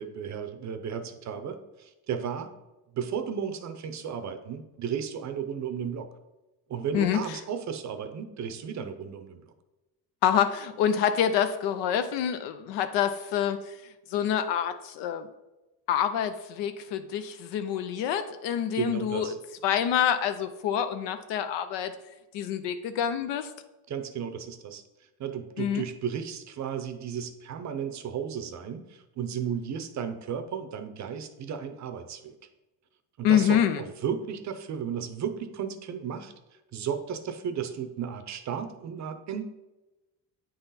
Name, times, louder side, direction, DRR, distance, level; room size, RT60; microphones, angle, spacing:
voice 1, 0.0-2.5 2.9-6.1 6.7-9.5 18.7-19.4 23.9-24.8 25.2-32.3 33.2-36.3 36.7-39.4, right 7 dB, 45° right, 9 dB, 0.6 m, -34 dB
voice 2, 10.2-13.6 14.1-15.3 15.9-19.3 19.6-21.9 22.3-23.5 25.6-25.8 33.2-33.8, left 9 dB, 85° left, 9 dB, 0.6 m, -26 dB
8.8 x 3.9 x 4.1 m, 1.0 s
cardioid pair, 145°, 42 cm